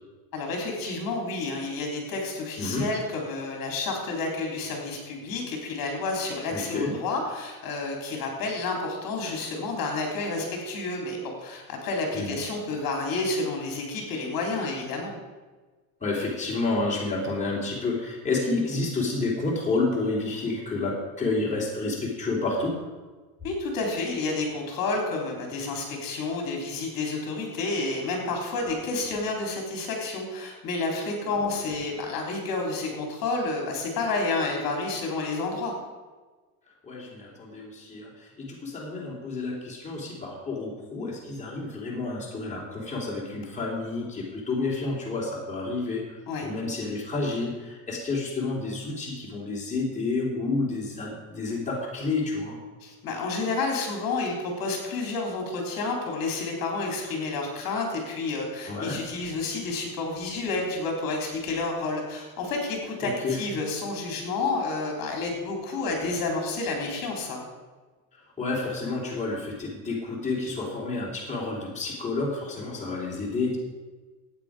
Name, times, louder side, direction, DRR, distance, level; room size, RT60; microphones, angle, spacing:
voice 1, 0.3-15.1 23.4-35.7 46.3-46.5 52.8-67.4, left 3 dB, 45° left, 1 dB, 3.6 m, -30 dB
voice 2, 2.6-2.9 6.5-6.9 12.1-12.3 16.0-22.8 28.6-28.7 36.8-52.6 58.7-59.0 63.0-63.4 68.4-73.6, left 3 dB, 15° left, -4 dB, 3.4 m, -30 dB
14.5 x 9.2 x 5.0 m, 1.3 s
supercardioid pair, 120°, 47 cm